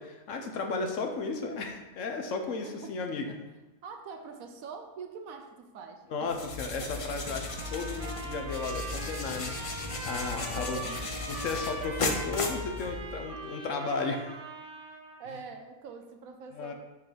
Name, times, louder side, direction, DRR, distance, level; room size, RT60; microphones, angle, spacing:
voice 1, 0.0-3.3 6.1-11.0 11.3-14.3 16.6-16.7, left 4 dB, 65° left, 4 dB, 1.1 m, -34 dB
voice 2, 2.6-3.4 3.8-6.3 6.8-7.4 9.0-9.1 10.2-11.1 15.2-16.7, right 5 dB, 75° right, 6 dB, 1.2 m, -45 dB
sound 1, 6.3-13.3, left 3 dB, 45° left, 0.4 m, -36 dB
sound 2, 7.4-15.2, right 3 dB, 55° right, 1.7 m, -41 dB
6.1 x 4.6 x 5.0 m, 1.1 s
omnidirectional pair, 1.5 m